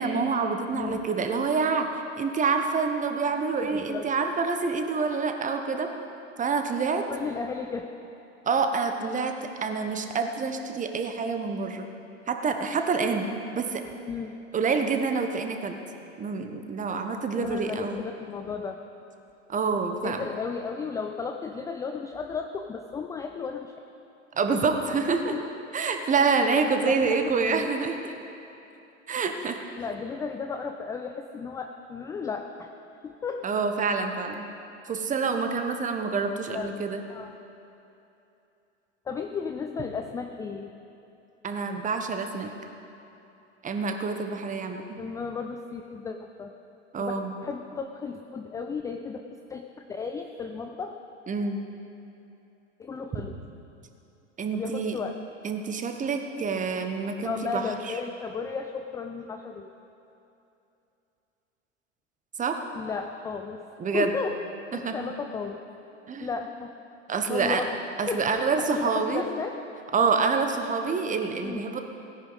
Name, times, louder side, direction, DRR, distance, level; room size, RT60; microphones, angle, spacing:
voice 1, 0.0-5.9 6.4-7.1 8.5-11.9 12.3-13.3 13.5-13.8 14.5-15.8 16.2-18.0 19.5-20.3 24.4-25.3 25.7-28.1 29.1-29.6 33.4-34.4 34.8-37.0 41.4-42.5 43.6-45.0 46.9-47.3 51.3-51.6 54.4-55.0 55.4-57.9 62.4-62.6 63.8-64.1 64.7-64.9 66.1-66.3 67.1-67.6 68.0-69.2 69.9-71.8, right 4 dB, 20° right, 6 dB, 1.1 m, -27 dB
voice 2, 0.7-1.0 3.7-4.0 7.1-7.9 14.1-14.3 17.4-18.8 20.0-23.7 24.5-24.6 24.9-25.5 26.9-27.7 29.8-32.7 33.0-33.5 36.5-36.7 37.1-37.4 39.1-40.7 45.0-46.5 47.0-47.2 47.4-51.0 52.8-53.3 54.5-55.2 57.2-59.7 62.7-63.6 63.9-64.4 64.7-65.6 66.2-66.7 67.3-67.8 68.1-68.2 68.6-69.6 71.4-71.6, left 5 dB, 10° left, 5 dB, 0.3 m, -34 dB
17.0 x 10.0 x 4.0 m, 2.8 s
hypercardioid pair, 90°, 36 cm